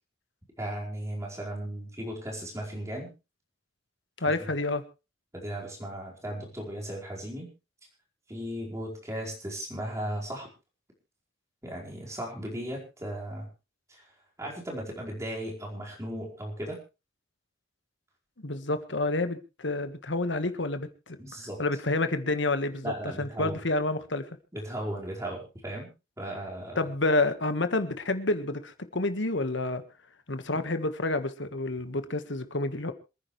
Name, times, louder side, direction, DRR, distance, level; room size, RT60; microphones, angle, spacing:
voice 1, 0.6-3.1 4.4-4.5 5.3-7.5 8.3-10.5 11.6-13.5 13.9-14.0 14.4-16.8 21.2-21.6 22.8-23.6 24.5-25.9 26.2-26.8 30.5-30.6, right 1 dB, 15° right, 4.9 m, -36 dB
voice 2, 4.2-4.8 18.4-21.2 21.6-24.2 26.7-29.8 30.3-32.9, left 2 dB, 65° left, 1.6 m, -29 dB
27.0 x 10.0 x 3.3 m
head